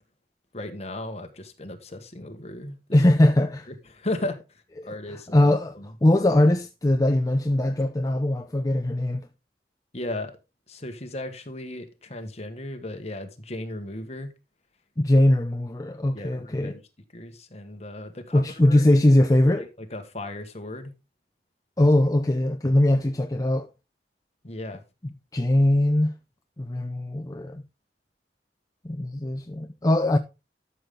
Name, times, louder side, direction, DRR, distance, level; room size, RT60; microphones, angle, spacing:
voice 1, 0.5-2.8 3.7-5.9 7.7-7.8 9.9-10.3 10.7-14.3 16.1-16.8 17.1-18.8 19.4-20.9 24.4-24.8, left 1 dB, 40° left, 1.6 m, -36 dB
voice 2, 2.9-3.7 4.8-4.9 5.3-5.7 6.0-9.3 15.0-16.7 18.3-19.6 21.8-23.7 25.3-26.1 26.6-27.6 28.8-30.2, left 1 dB, 20° left, 0.6 m, -21 dB
12.5 x 6.9 x 3.8 m
head